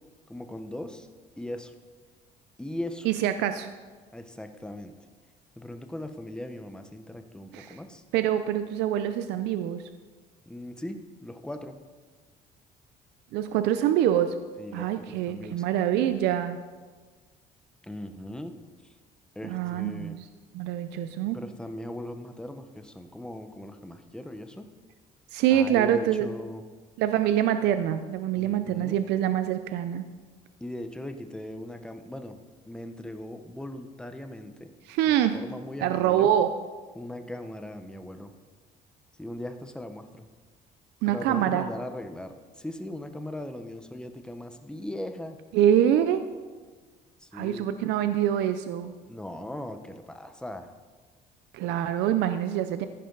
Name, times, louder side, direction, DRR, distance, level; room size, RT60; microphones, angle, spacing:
voice 1, 0.3-1.1 1.4-1.7 2.6-3.1 4.1-4.9 5.6-8.0 10.5-11.7 14.6-15.6 17.8-18.6 18.8-18.9 19.3-20.2 21.3-24.7 25.5-26.6 28.4-29.0 30.6-34.7 35.1-36.3 36.9-38.3 39.2-40.3 41.1-45.4 47.2-47.7 49.1-50.7, left 1 dB, 5° left, 7 dB, 1.0 m, -39 dB
voice 2, 3.0-3.7 7.5-7.8 8.1-9.8 13.3-14.3 14.7-16.6 19.4-20.2 20.5-21.4 25.3-26.3 27.0-30.0 34.9-35.4 35.8-36.5 41.0-41.7 45.5-46.3 47.3-48.9 51.5-52.9, right 10 dB, 90° right, 10 dB, 0.6 m, -25 dB
15.0 x 11.0 x 4.0 m, 1.4 s
cardioid pair, 110°, 17 cm